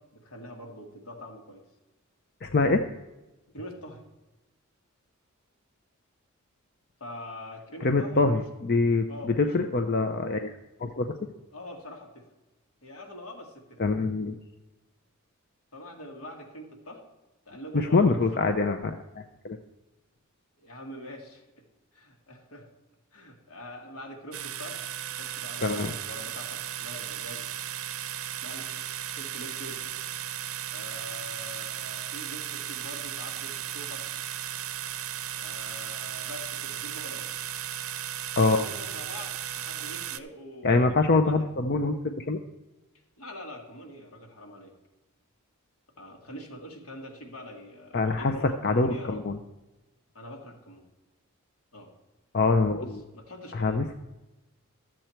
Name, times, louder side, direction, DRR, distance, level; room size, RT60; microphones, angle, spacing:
voice 1, 0.0-1.6 3.5-4.0 7.0-8.4 9.1-9.5 11.5-12.3 12.8-13.8 15.7-17.0 17.5-18.4 20.6-21.7 21.9-22.7 23.1-24.8 25.1-27.5 28.4-28.9 29.2-29.8 30.7-34.1 35.3-37.3 38.5-41.4 43.2-44.7 46.0-49.3 50.1-50.9 51.7-51.9 53.1-53.8, left 1 dB, 80° left, 1 dB, 2.1 m, -44 dB
voice 2, 2.4-2.9 7.8-10.5 10.8-11.2 13.8-14.3 17.7-19.6 25.6-25.9 38.4-38.6 40.6-42.4 47.9-48.3 48.6-49.4 52.3-53.0 53.5-53.9, left 3 dB, 45° left, 6 dB, 0.6 m, -25 dB
sound 1, 24.3-40.2, right 10 dB, 70° right, 0.5 m, -36 dB
12.5 x 7.6 x 4.5 m, 1.0 s
head